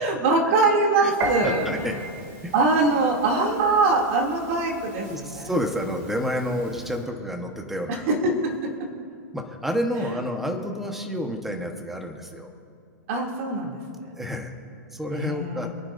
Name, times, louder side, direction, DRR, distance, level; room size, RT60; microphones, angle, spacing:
voice 1, 0.0-2.0 2.5-5.5 7.9-8.9 13.1-14.1 15.1-15.7, right 3 dB, 45° right, -1 dB, 2.7 m, -23 dB
Piano, 1.2-7.0, right 1 dB, 25° right, 2.4 m, -36 dB
voice 2, 1.4-1.9 2.4-2.5 5.0-8.1 9.3-12.5 14.2-14.5 14.9-15.7, equal, 5° right, 3 dB, 1.2 m, -29 dB
27.0 x 9.7 x 2.6 m, 2.4 s
hypercardioid pair, 155°, 10 cm